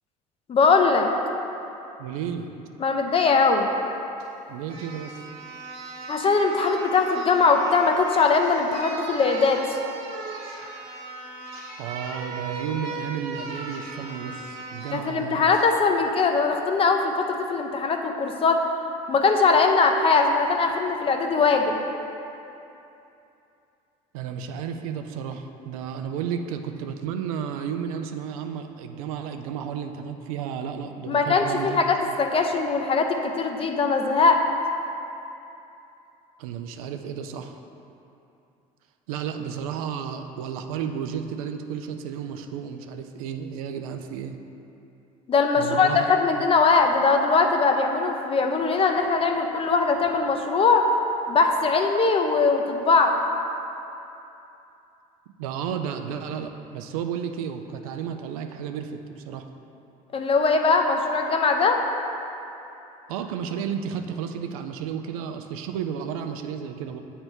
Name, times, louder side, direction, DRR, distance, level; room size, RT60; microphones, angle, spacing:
voice 1, 0.5-1.1 2.8-3.7 6.1-9.8 14.9-18.6 19.1-21.8 31.1-34.4 45.3-50.9 51.3-53.1 60.1-61.8, left 4 dB, 30° left, 4 dB, 0.6 m, -21 dB
voice 2, 2.0-2.5 4.5-5.2 11.8-15.5 24.1-31.8 36.4-37.6 39.1-44.4 45.6-46.0 55.4-59.5 63.1-67.0, right 8 dB, 90° right, 7 dB, 0.4 m, -32 dB
sound 1, 4.2-4.3 4.7-15.0 15.5-15.7, right 3 dB, 65° right, 1.1 m, -37 dB
7.9 x 3.4 x 4.4 m, 2.8 s
supercardioid pair, 85°, 18 cm